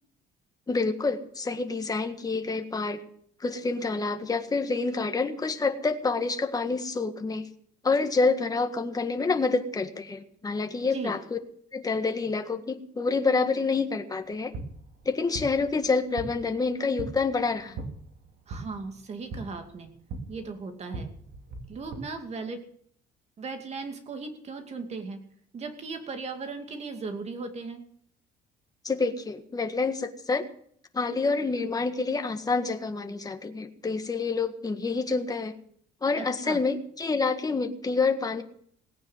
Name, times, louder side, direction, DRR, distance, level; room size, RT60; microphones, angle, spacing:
voice 1, 0.7-3.0 3.4-7.4 7.8-11.4 11.7-14.5 15.0-17.8 28.8-30.4 30.9-35.5 36.0-38.4, left 4 dB, 20° left, 6 dB, 1.7 m, -27 dB
walking soft ground, 14.2-22.0, right 3 dB, 70° right, 2.8 m, -41 dB
voice 2, 18.5-19.9 20.3-21.1 21.7-22.6 23.4-25.2 25.5-27.8 36.2-36.6, right 4 dB, 40° right, 6 dB, 2.6 m, -37 dB
18.0 x 9.5 x 7.5 m, 0.64 s
cardioid pair, 110°, 17 cm